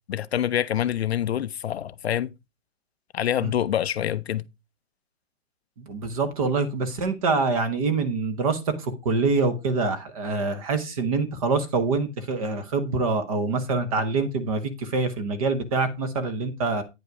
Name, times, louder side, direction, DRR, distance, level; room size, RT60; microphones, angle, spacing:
voice 1, 0.1-2.3 3.1-4.5, left 10 dB, 55° left, 0.5 m, -26 dB
voice 2, 5.8-16.8, right 3 dB, 30° right, 1.0 m, -25 dB
9.3 x 5.4 x 4.6 m
hypercardioid pair, 170°, 37 cm